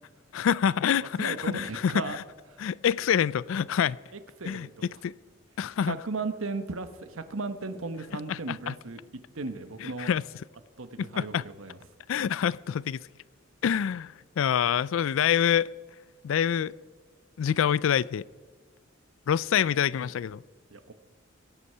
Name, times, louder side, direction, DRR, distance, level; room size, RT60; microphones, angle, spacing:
voice 1, 0.3-2.2 2.6-4.0 4.5-4.7 5.0-5.1 5.6-6.0 8.3-8.7 9.8-10.2 11.0-11.5 12.1-13.0 13.6-15.7 16.2-16.7 17.4-18.2 19.3-20.4, left 8 dB, 80° left, 0.3 m, -26 dB
voice 2, 1.0-2.2 4.4-4.7 5.9-9.0 9.3-10.1 10.8-11.8 20.7-20.9, right 3 dB, 85° right, 1.0 m, -36 dB
22.0 x 8.2 x 5.6 m
head